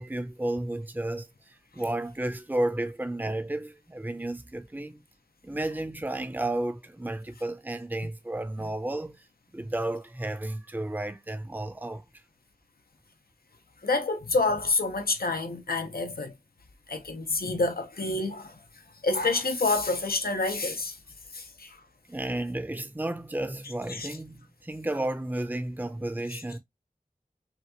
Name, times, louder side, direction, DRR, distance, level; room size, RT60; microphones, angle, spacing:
voice 1, 0.0-5.0 5.4-9.2 9.5-12.0 22.1-26.6, right 1 dB, 10° right, 0.6 m, -32 dB
voice 2, 13.8-16.3 16.9-18.6 19.0-21.0 21.3-21.8 23.9-24.1 26.3-26.4, left 3 dB, 90° left, 0.9 m, -28 dB
5.8 x 2.4 x 2.9 m
wide cardioid pair, 40°, 15 cm